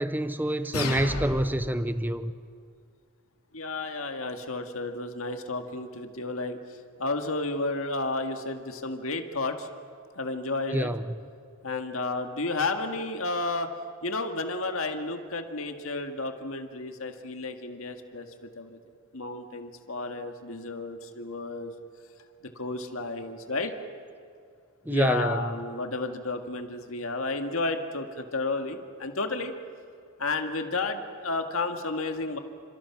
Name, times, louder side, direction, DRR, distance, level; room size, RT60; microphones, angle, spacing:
voice 1, 0.0-2.3 10.7-11.1 24.9-25.5, right 1 dB, 10° right, 11 dB, 0.6 m, -27 dB
sound 1, 0.7-1.7, left 2 dB, 80° left, 3.5 m, -32 dB
voice 2, 3.5-9.7 10.2-10.9 11.6-13.7 14.0-18.3 18.6-18.8 19.1-21.7 22.6-23.7 24.8-29.5 30.2-32.4, left 3 dB, 65° left, 5 dB, 1.9 m, -32 dB
29.5 x 27.0 x 6.0 m, 2.3 s
head